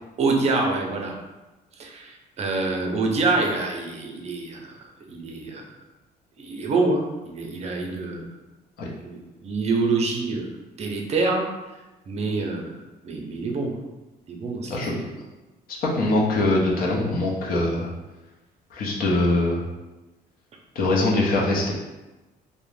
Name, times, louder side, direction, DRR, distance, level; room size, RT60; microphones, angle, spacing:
voice 1, 0.2-1.1 1.8-4.8 5.1-5.6 6.4-8.3 9.0-10.5 10.8-11.4 12.1-12.7 13.0-13.8 14.3-15.0, right 3 dB, 40° right, 1 dB, 0.5 m, -26 dB
voice 2, 15.9-17.9 18.7-19.6 20.8-21.7, left 2 dB, 60° left, -3 dB, 0.6 m, -22 dB
2.4 x 2.1 x 3.1 m, 1.1 s
cardioid pair, 110°, 17 cm